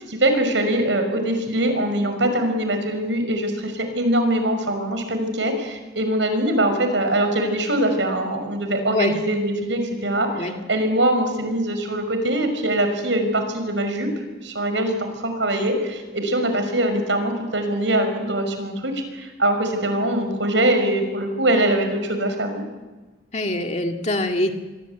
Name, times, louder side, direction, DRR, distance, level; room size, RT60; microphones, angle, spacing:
voice 1, 0.0-14.1 14.4-22.6, right 1 dB, 80° right, 7 dB, 5.7 m, -22 dB
voice 2, 23.3-24.5, left 1 dB, 35° left, 4 dB, 2.2 m, -24 dB
26.0 x 22.5 x 8.3 m, 1.2 s
head